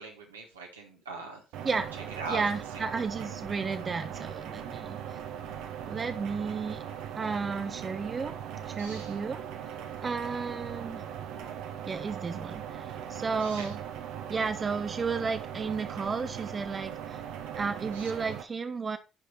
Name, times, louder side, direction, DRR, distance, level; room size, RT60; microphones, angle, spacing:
voice 1, 0.0-1.8 2.2-2.4 8.8-9.1 13.4-13.7 17.9-18.1, right 4 dB, 85° right, 0 dB, 1.6 m, -41 dB
sound 1, 1.5-18.4, right 9 dB, 70° right, 1.0 m, -39 dB
voice 2, 2.3-5.2 5.9-6.8 7.1-8.4 8.7-9.4 10.0-11.0 11.9-13.8 14.3-17.2 17.5-19.0, right 5 dB, 35° right, 9 dB, 0.9 m, -33 dB
10.5 x 4.9 x 4.2 m, 0.30 s
figure-of-eight pair, 45°, 0 cm